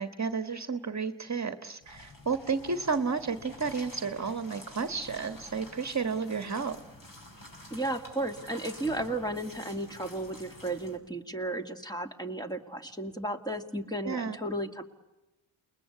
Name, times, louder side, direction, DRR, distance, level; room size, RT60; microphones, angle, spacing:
voice 1, 0.0-6.8 14.0-14.4, right 5 dB, 35° right, 9 dB, 1.5 m, -32 dB
sound 1, 1.8-11.0, left 1 dB, 45° left, 6.7 m, -49 dB
voice 2, 7.7-14.8, right 1 dB, 10° left, 5 dB, 2.4 m, -34 dB
29.0 x 21.0 x 8.5 m, 1.0 s
cardioid pair, 85°, 48 cm